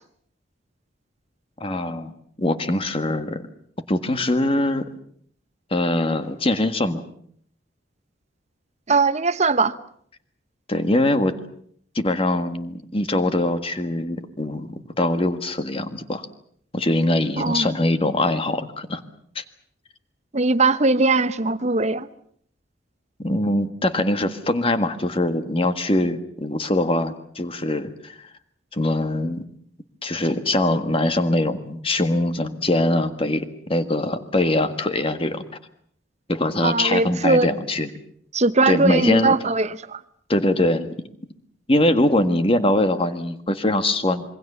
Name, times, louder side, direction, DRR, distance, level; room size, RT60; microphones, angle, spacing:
voice 1, 1.6-2.1 2.4-3.4 3.9-4.9 5.7-7.0 10.7-11.4 11.9-16.3 16.7-19.0 19.3-19.4 23.2-28.3 28.7-29.4 30.0-35.4 36.3-37.9 38.6-39.4 40.3-40.9 41.7-44.2, left 1 dB, 30° left, 1.7 m, -22 dB
voice 2, 8.9-9.7 17.4-17.7 20.3-22.1 36.6-37.5 38.3-40.0, right 3 dB, 35° right, 1.0 m, -20 dB
27.0 x 22.5 x 6.9 m
head